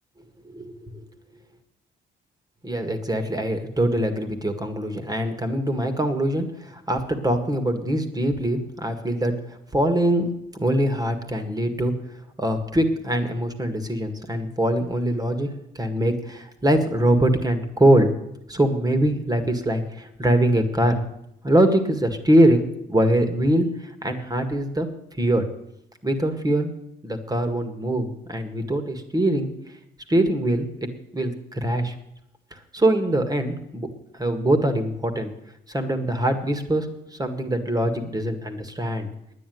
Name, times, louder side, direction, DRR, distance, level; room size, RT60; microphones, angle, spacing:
voice 1, 0.4-0.9 2.6-10.3 10.6-11.9 12.4-18.1 18.5-21.0 21.4-24.9 25.2-25.5 26.0-26.7 27.0-29.5 30.1-31.9 32.5-33.9 34.1-35.3 35.7-36.9 37.2-39.1, right 1 dB, 20° right, 8 dB, 1.9 m, -23 dB
9.9 x 9.9 x 9.4 m, 0.80 s
cardioid pair, 90°, 20 cm